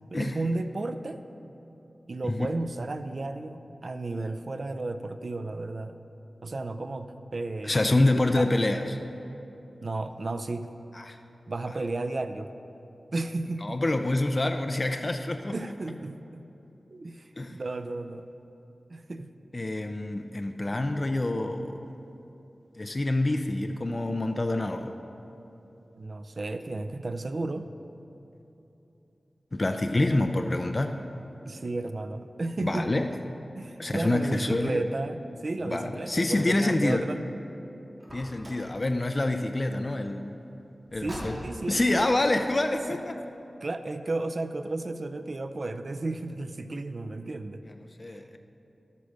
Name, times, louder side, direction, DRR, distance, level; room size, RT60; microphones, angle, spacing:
voice 1, 0.1-1.2 2.1-6.0 6.4-7.8 8.4-8.6 9.8-10.7 11.5-12.5 13.1-13.8 15.5-16.4 16.9-18.3 18.9-19.3 26.0-27.7 31.5-33.1 33.6-37.2 41.0-42.1 42.9-43.0 43.6-47.6 48.0-48.2, right 2 dB, 50° right, 10 dB, 0.5 m, -33 dB
voice 2, 7.6-9.0 11.0-11.2 13.6-15.5 17.4-17.6 19.5-21.9 22.8-24.9 29.5-31.0 32.6-33.1 33.8-34.8 35.6-37.0 38.1-40.4 40.9-41.4 41.7-43.2 48.0-48.4, left 2 dB, 35° left, 6 dB, 0.5 m, -27 dB
Car, 38.0-38.7 40.9-41.7, equal, 20° right, 3.4 m, -41 dB
12.0 x 8.3 x 6.5 m, 3.0 s
wide cardioid pair, 95°, 0 cm